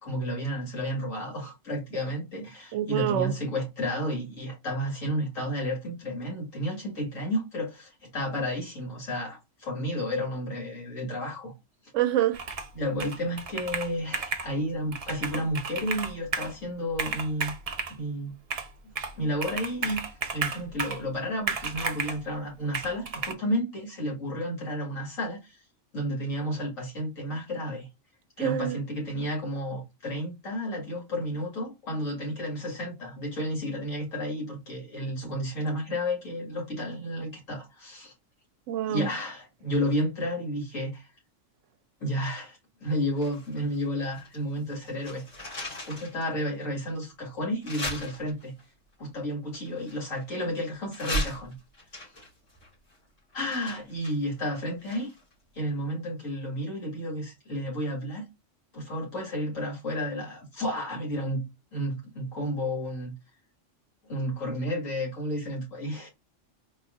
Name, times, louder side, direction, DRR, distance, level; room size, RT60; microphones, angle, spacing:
voice 1, 0.0-11.5 12.7-17.5 17.9-18.3 19.1-25.6 25.9-27.9 28.4-38.1 38.9-41.1 42.0-45.2 45.8-48.5 49.0-51.6 53.3-55.1 55.5-58.2 58.7-61.5 61.7-63.1 64.1-66.1, equal, 80° left, 2.5 m, -32 dB
voice 2, 2.7-3.4 11.9-12.4 28.4-28.8 38.7-39.1, right 11 dB, 75° right, 0.9 m, -26 dB
Computer keyboard, 12.3-12.7 13.0-14.5 14.9-16.5 16.9-18.0 18.5-19.2 19.4-21.1 21.5-22.2 22.7-23.3, right 4 dB, 50° right, 0.4 m, -33 dB
sound 1, 43.2-44.4 44.7-46.2 46.7-46.8 47.6-48.6 49.5-50.5 50.9-55.3 55.6-55.7, equal, 65° left, 3.2 m, -37 dB
4.8 x 3.5 x 2.5 m
omnidirectional pair, 1.3 m